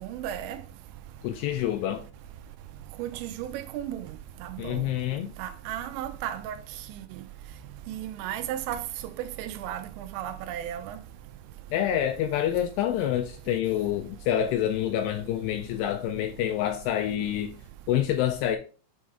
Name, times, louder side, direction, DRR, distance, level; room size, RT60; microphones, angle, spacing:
voice 1, 0.0-0.6 3.0-4.9 5.4-6.6 7.9-8.8 9.2-11.0, right 11 dB, 90° right, 2.9 m, -34 dB
voice 2, 1.2-2.0 4.6-5.3 11.7-17.5 17.9-18.6, left 11 dB, 85° left, 2.5 m, -27 dB
8.5 x 3.7 x 3.2 m
omnidirectional pair, 5.1 m